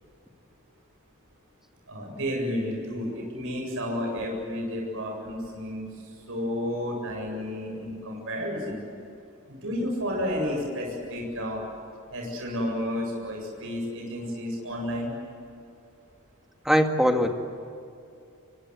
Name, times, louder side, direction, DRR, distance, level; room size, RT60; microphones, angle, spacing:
voice 1, 1.9-5.9 6.3-8.8 9.5-11.6 12.1-15.1, equal, 65° right, 0 dB, 7.9 m, -31 dB
voice 2, 16.7-17.3, equal, ahead, 4 dB, 2.0 m, -21 dB
26.5 x 24.0 x 8.2 m, 2.6 s
head